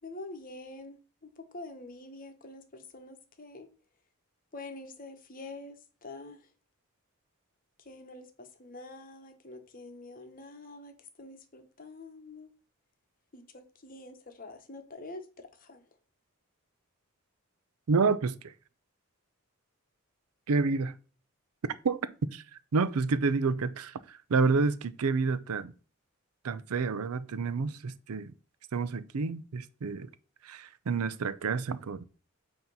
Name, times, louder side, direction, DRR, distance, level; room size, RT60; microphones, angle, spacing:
voice 1, 0.0-1.0 1.4-3.7 4.5-5.7 6.0-6.4 7.9-12.5 13.3-15.8, left 2 dB, 40° left, 1.0 m, -46 dB
voice 2, 17.9-18.5 20.5-20.9 21.8-22.4 22.7-25.7 26.4-28.3 28.7-30.1 30.4-32.0, right 4 dB, 85° right, 0.5 m, -29 dB
7.9 x 2.9 x 5.4 m
head